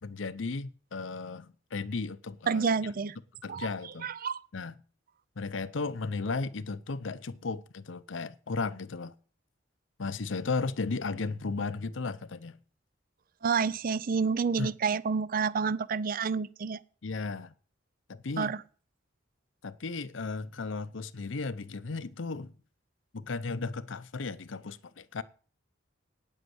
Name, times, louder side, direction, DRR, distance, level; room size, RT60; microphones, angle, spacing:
voice 1, 0.0-2.9 3.4-4.1 4.5-4.8 5.4-9.1 10.0-12.6 14.6-14.7 17.0-17.5 18.1-18.5 19.6-22.5 23.1-25.2, left 4 dB, 80° left, 0.7 m, -35 dB
voice 2, 2.5-3.2 3.5-3.7 4.0-4.4 13.4-16.8 18.4-18.6, right 5 dB, 50° right, 0.5 m, -29 dB
9.3 x 8.0 x 7.8 m
head